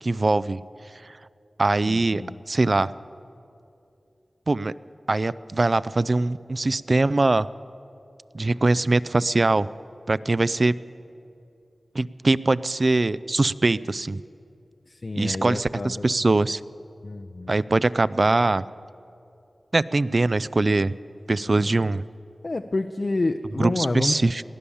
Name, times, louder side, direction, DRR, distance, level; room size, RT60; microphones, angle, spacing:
voice 1, 0.0-0.6 1.6-2.9 4.5-4.7 5.1-7.5 8.3-9.7 10.1-10.7 11.9-14.2 15.1-16.6 17.5-18.6 19.7-20.9 21.3-22.0 23.6-24.4, right 2 dB, 50° right, 17 dB, 0.3 m, -22 dB
voice 2, 1.8-2.4 14.9-16.1 17.0-17.6 21.5-21.7 22.4-24.2, left 2 dB, 50° left, 6 dB, 0.5 m, -29 dB
18.5 x 10.0 x 7.0 m, 2.6 s
wide cardioid pair, 55°, 0 cm